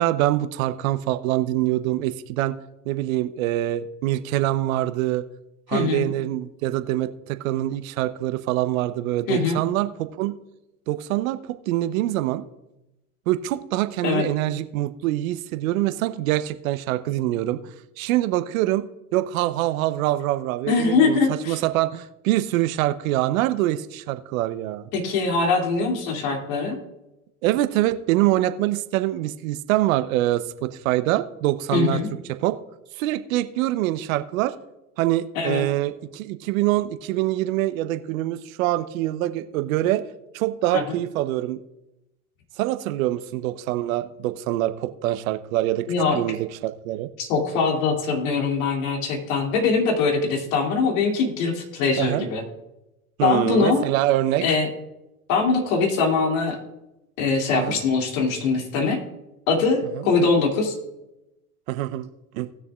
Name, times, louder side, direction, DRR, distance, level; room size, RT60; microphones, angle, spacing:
voice 1, 0.0-2.6 2.9-5.2 5.7-9.9 10.2-10.3 10.9-12.4 13.3-18.8 19.1-24.9 27.4-32.0 32.3-32.6 32.9-34.5 35.0-40.0 40.3-41.6 42.6-45.9 46.1-47.1 52.0-52.2 53.2-54.4 57.5-57.8 61.7-62.5, right 15 dB, 65° right, 11 dB, 0.8 m, -24 dB
voice 2, 5.7-6.1 9.3-9.6 14.0-14.2 20.7-21.6 24.9-26.8 31.7-32.1 35.3-35.6 40.7-40.8 45.9-46.2 47.2-52.4 53.2-53.8 54.4-54.7 55.3-56.6 57.2-59.0 59.5-60.8, left 4 dB, 65° left, 2 dB, 2.7 m, -22 dB
19.0 x 6.8 x 2.4 m, 0.94 s
hypercardioid pair, 90°, 44 cm